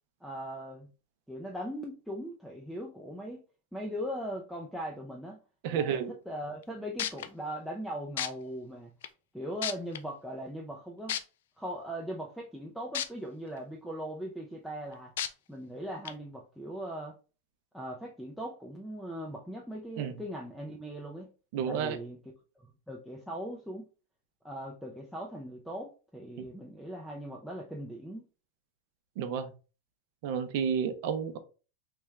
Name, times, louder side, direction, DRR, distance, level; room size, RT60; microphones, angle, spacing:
voice 1, 0.2-0.9 1.3-3.4 3.7-5.4 5.7-8.9 9.3-11.2 11.6-15.1 15.5-17.2 17.7-21.3 21.7-22.2 22.9-23.9 24.4-28.3, equal, ahead, 0.4 m, -39 dB
voice 2, 5.6-6.1 20.0-20.1 21.5-22.0 29.2-29.5 30.2-31.4, right 7 dB, 55° right, 0.6 m, -31 dB
sound 1, 6.6-6.7 7.0-7.3 8.2-8.3 9.0-9.1 9.6-10.0 11.1-11.2 12.9-13.1 13.6-13.7 15.2-15.3 16.0-16.1, left 10 dB, 75° left, 0.3 m, -31 dB
3.4 x 2.2 x 3.0 m
supercardioid pair, 140°, 0 cm